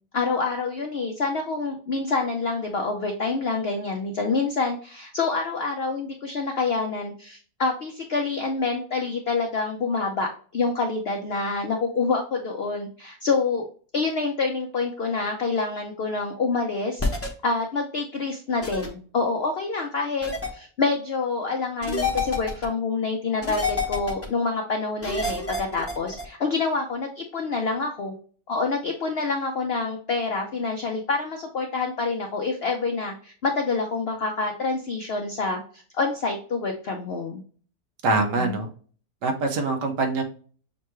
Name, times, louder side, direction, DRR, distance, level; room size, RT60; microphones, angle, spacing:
voice 1, 0.1-13.7 13.9-17.0 17.4-28.1 28.5-37.4 38.1-38.6, left 4 dB, 80° left, 2 dB, 0.5 m, -27 dB
sound 1, 17.0-17.3 18.6-18.9 20.2-20.5 21.8-22.6 23.4-24.3 25.0-26.2, left 3 dB, 15° left, 0.5 m, -28 dB
voice 2, 38.0-38.7 39.2-40.2, right 3 dB, 85° right, 4 dB, 1.5 m, -24 dB
6.3 x 2.3 x 3.0 m, 0.43 s
omnidirectional pair, 1.8 m